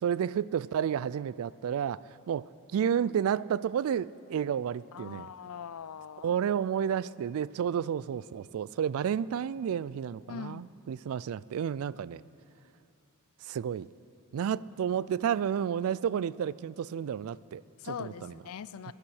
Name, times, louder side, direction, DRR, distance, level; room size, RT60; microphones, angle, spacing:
voice 1, 0.0-5.3 6.2-12.2 13.4-13.9 14.3-18.3 18.9-19.0, right 8 dB, 70° right, 20 dB, 0.3 m, -31 dB
voice 2, 4.9-6.3 10.3-10.6 17.8-18.9, left 7 dB, 75° left, 17 dB, 0.4 m, -41 dB
23.0 x 8.7 x 6.4 m, 2.7 s
head